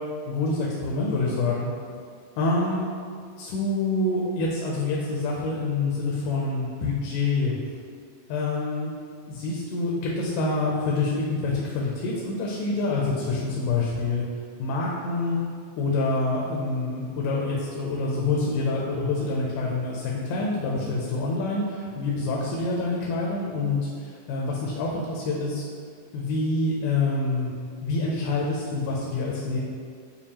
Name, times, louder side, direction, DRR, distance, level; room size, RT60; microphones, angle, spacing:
voice 1, 0.3-1.7 2.4-2.8 3.4-7.6 8.3-8.9 9.3-14.2 14.6-15.4 15.8-25.6 26.1-27.5 27.8-29.6, left 3 dB, 80° left, -3 dB, 2.0 m, -26 dB
6.9 x 2.4 x 2.8 m, 2.2 s
omnidirectional pair, 3.6 m